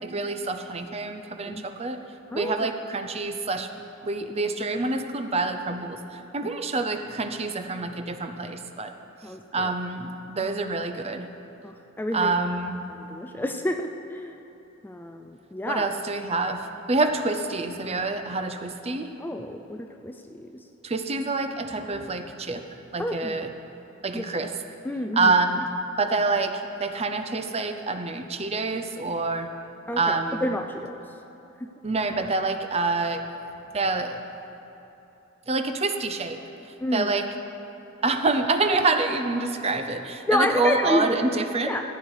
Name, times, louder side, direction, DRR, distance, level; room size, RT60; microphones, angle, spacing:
voice 1, 0.0-2.0 2.3-3.7 4.0-8.9 9.5-11.3 12.1-12.8 15.7-19.1 20.8-22.6 22.9-23.5 24.0-24.5 25.1-25.7 26.0-29.5 29.9-30.6 31.8-33.2 33.7-34.2 35.5-36.4 36.9-37.3 38.0-41.8, right 3 dB, 30° right, 7 dB, 0.6 m, -27 dB
voice 2, 2.3-2.7 6.4-6.5 9.2-9.7 11.6-12.3 13.0-14.4 14.8-15.9 19.2-20.6 23.0-23.3 24.1-24.2 24.8-25.3 29.9-31.0 36.8-37.1 40.3-41.2 41.7-41.8, left 1 dB, 10° left, 5 dB, 0.4 m, -29 dB
15.0 x 8.2 x 4.8 m, 3.0 s
head